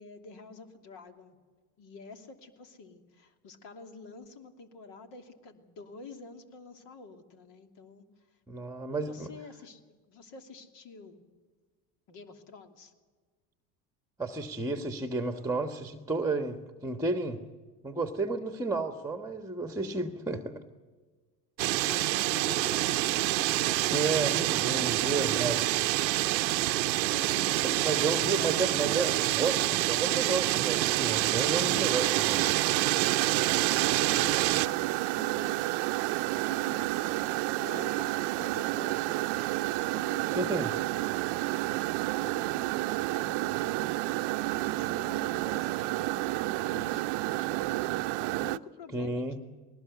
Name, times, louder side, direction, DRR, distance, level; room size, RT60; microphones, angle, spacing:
voice 1, 0.0-1.4 1.8-8.4 8.9-11.2 12.1-12.9 21.6-24.3 24.5-25.6 27.0-28.2 28.5-28.6 33.5-35.7 36.5-41.2 41.7-49.4, left 4 dB, 55° left, 6 dB, 2.9 m, -49 dB
voice 2, 8.5-9.3 14.2-17.4 17.8-20.6 23.9-25.6 27.6-32.5 40.3-40.7 48.9-49.4, right 3 dB, 5° right, 7 dB, 1.4 m, -32 dB
sound 1, 21.6-34.7, right 16 dB, 90° right, 0.7 m, -27 dB
sound 2, 30.8-48.6, right 19 dB, 50° right, 0.7 m, -31 dB
20.5 x 19.0 x 8.2 m, 1.4 s
hypercardioid pair, 85°, 50 cm